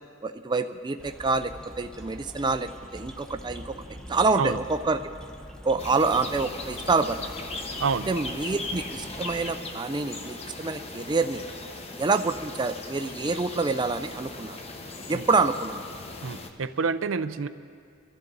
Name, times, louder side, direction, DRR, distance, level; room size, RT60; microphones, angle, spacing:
voice 1, 0.2-5.0 5.6-7.2 8.1-11.4 12.0-14.6 15.1-15.9, right 3 dB, 20° right, 8 dB, 0.4 m, -27 dB
sound 1, 1.0-9.6, equal, 5° left, 1.0 m, -44 dB
sound 2, 5.8-16.5, left 2 dB, 30° left, 1.1 m, -39 dB
voice 2, 16.2-17.5, right 5 dB, 70° right, 12 dB, 0.5 m, -28 dB
24.5 x 13.5 x 4.0 m, 2.2 s
head